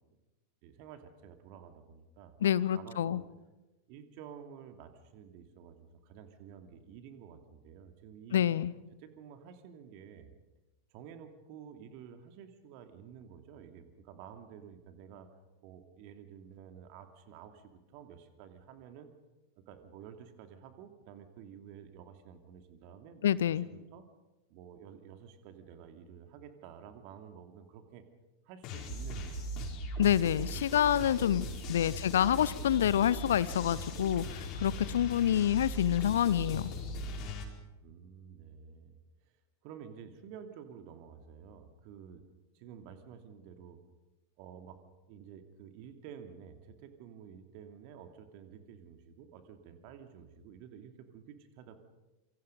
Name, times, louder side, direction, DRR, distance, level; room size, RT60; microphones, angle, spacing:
voice 1, 0.6-2.4 2.7-3.2 3.9-8.5 9.0-10.3 10.9-15.3 15.6-19.1 19.6-24.1 24.5-28.0 28.4-29.7 30.4-31.2 32.0-32.2 35.1-35.7 37.8-38.9 39.2-42.2 42.5-43.8 44.4-44.8 45.1-51.8, right 8 dB, 45° right, 7 dB, 2.7 m, -51 dB
voice 2, 2.4-3.2 8.3-8.7 23.2-23.6 30.0-36.7, left 10 dB, 60° left, 20 dB, 0.7 m, -27 dB
sound 1, 28.6-37.4, equal, 35° left, 5.0 m, -39 dB
27.0 x 25.0 x 5.4 m, 1.0 s
figure-of-eight pair, 90°, 0 cm